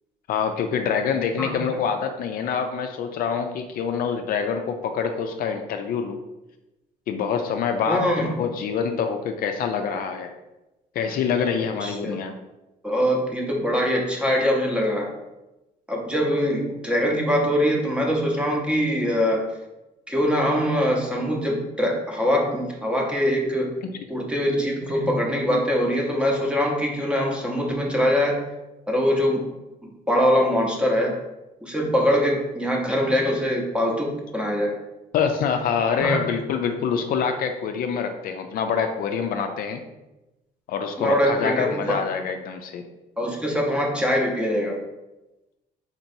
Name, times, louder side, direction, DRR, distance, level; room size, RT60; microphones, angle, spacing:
voice 1, 0.3-6.2 7.1-10.3 11.0-12.4 23.8-23.9 35.1-39.8 40.7-42.8, left 6 dB, 60° left, 5 dB, 0.4 m, -25 dB
voice 2, 7.9-8.3 11.8-12.1 12.8-15.1 15.9-19.5 20.1-23.7 24.1-28.4 28.9-29.4 30.1-31.1 31.6-34.7 36.0-36.2 41.0-42.0 43.2-44.8, equal, 5° right, -1 dB, 0.7 m, -23 dB
4.3 x 2.9 x 2.6 m, 1.0 s
cardioid pair, 110°, 17 cm